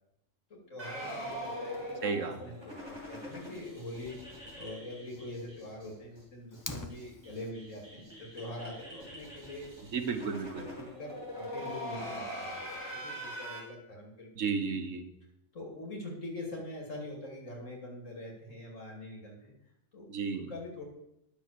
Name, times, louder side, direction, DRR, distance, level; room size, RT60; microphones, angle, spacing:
voice 1, 0.5-4.2 4.5-9.7 10.6-14.3 15.5-19.5 19.9-20.1 20.3-20.8, left 1 dB, 75° left, 0 dB, 3.3 m, -44 dB
sound 1, 0.8-5.9 6.1-6.2 6.5-6.6 6.9-13.6, equal, 20° right, 3.6 m, -43 dB
voice 2, 2.0-2.4 9.9-10.6 14.4-15.0 20.1-20.5, right 5 dB, 75° right, 7 dB, 1.5 m, -33 dB
Fire, 6.5-7.5, left 2 dB, 20° left, 0.5 m, -42 dB
10.5 x 7.0 x 6.8 m, 0.82 s
omnidirectional pair, 1.3 m